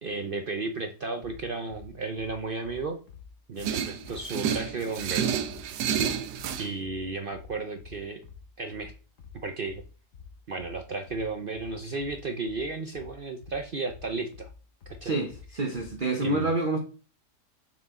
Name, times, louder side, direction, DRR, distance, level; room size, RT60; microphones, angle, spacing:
voice 1, 0.0-3.0 3.5-5.3 6.6-8.2 8.6-8.9 9.3-9.8 10.5-14.5 14.9-15.2 16.2-16.5, right 3 dB, 55° right, 0.6 m, -34 dB
sound 1, 1.2-16.0, left 6 dB, 55° left, 1.6 m, -48 dB
sound 2, 3.6-6.7, right 8 dB, 80° right, 1.3 m, -30 dB
voice 2, 15.0-16.8, right 2 dB, 35° right, 1.0 m, -28 dB
7.1 x 5.8 x 3.7 m
omnidirectional pair, 1.7 m